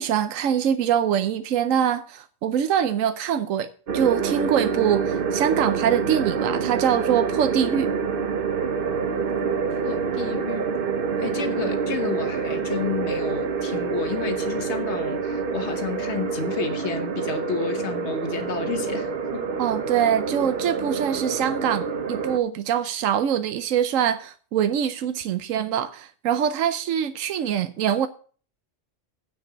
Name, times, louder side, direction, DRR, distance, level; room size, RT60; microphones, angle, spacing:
voice 1, 0.0-7.9 19.6-28.1, right 9 dB, 85° right, 1.1 m, -24 dB
sound 1, 3.9-22.4, right 5 dB, 50° right, 1.0 m, -27 dB
voice 2, 9.7-10.7 11.2-19.5 20.0-20.1, left 6 dB, 60° left, 1.5 m, -31 dB
9.3 x 5.2 x 7.8 m
omnidirectional pair, 1.3 m